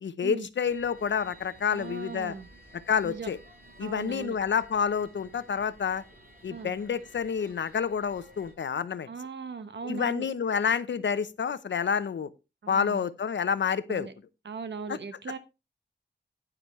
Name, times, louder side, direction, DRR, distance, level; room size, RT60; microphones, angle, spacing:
voice 1, 0.0-2.3 2.7-3.4 3.8-6.0 6.4-9.1 9.8-12.3 12.7-14.1 14.9-15.0, left 7 dB, 80° left, 14 dB, 0.8 m, -28 dB
sound 1, 0.6-8.5, equal, 50° right, 5.3 m, -54 dB
voice 2, 1.7-2.5 3.0-3.3 3.8-4.4 6.5-6.7 9.1-10.3 12.6-13.1 13.9-14.1 14.4-15.4, right 5 dB, 70° right, 10 dB, 1.1 m, -38 dB
10.0 x 9.8 x 3.2 m, 0.26 s
wide cardioid pair, 130°, 19 cm